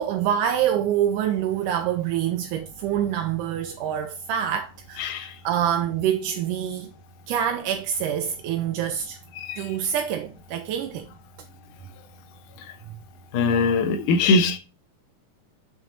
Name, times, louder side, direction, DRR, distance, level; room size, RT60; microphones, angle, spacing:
voice 1, 0.0-6.9 7.3-9.2 9.6-11.1 12.9-13.0, right 10 dB, 80° right, 2.2 m, -26 dB
voice 2, 5.0-5.3 9.4-9.7 13.3-14.6, left 4 dB, 70° left, 2.5 m, -22 dB
6.8 x 5.9 x 3.9 m
omnidirectional pair, 3.9 m